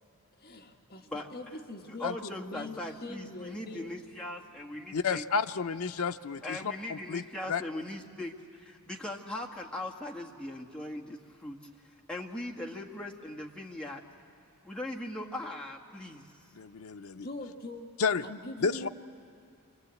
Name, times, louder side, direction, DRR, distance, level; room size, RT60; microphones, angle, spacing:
voice 1, 0.4-4.1 17.1-17.9 18.2-18.9, left 2 dB, 45° left, 2 dB, 1.6 m, -43 dB
voice 2, 1.9-5.2 6.4-11.6 12.1-14.0 14.6-16.2, left 1 dB, 5° left, -2 dB, 1.7 m, -39 dB
voice 3, 4.9-7.6 16.5-17.3 18.0-18.2 18.6-18.9, left 5 dB, 75° left, 7 dB, 0.6 m, -31 dB
29.0 x 24.5 x 8.3 m, 2.3 s
head